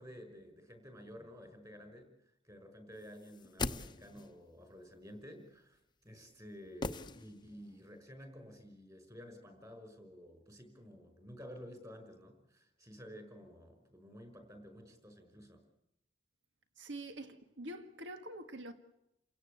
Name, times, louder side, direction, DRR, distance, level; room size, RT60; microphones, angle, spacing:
voice 1, 0.0-2.1 2.4-15.6, equal, 20° right, 5.9 m, -52 dB
sound 1, 3.2-4.4 6.8-7.7 8.0-8.1, left 3 dB, 25° left, 0.8 m, -40 dB
voice 2, 16.8-18.7, right 1 dB, 75° right, 1.8 m, -45 dB
29.5 x 16.5 x 8.5 m
head